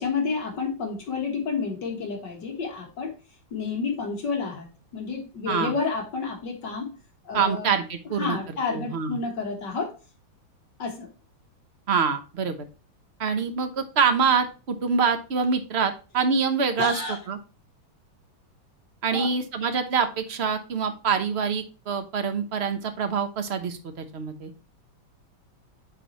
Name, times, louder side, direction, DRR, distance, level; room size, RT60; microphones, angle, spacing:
voice 1, 0.0-3.1 3.5-6.9 7.2-7.7 8.2-9.9 10.8-11.1 16.8-17.2 19.1-19.3, left 4 dB, 60° left, 1 dB, 2.1 m, -30 dB
voice 2, 7.3-8.4 8.7-9.2 11.9-12.5 13.2-16.9 17.3-17.4 19.0-24.5, right 5 dB, 45° right, 8 dB, 1.0 m, -25 dB
9.7 x 4.1 x 3.0 m, 0.33 s
omnidirectional pair, 2.1 m